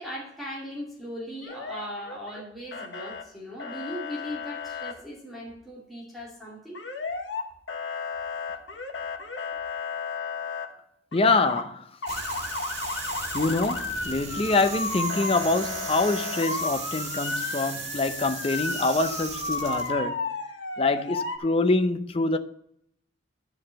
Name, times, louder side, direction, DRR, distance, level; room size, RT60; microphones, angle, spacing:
voice 1, 0.0-6.8, equal, ahead, 2.5 m, -38 dB
Motor vehicle (road) / Siren, 1.4-2.4 2.7-3.2 3.6-4.9 6.7-7.4 7.7-10.7 11.1-11.6 12.0-21.4, left 3 dB, 70° left, 1.3 m, -33 dB
voice 2, 11.1-11.9 13.3-20.2 20.8-22.4, left 3 dB, 30° left, 0.6 m, -25 dB
sound 1, 12.1-19.9, right 4 dB, 35° right, 1.8 m, -37 dB
10.5 x 4.8 x 7.6 m
head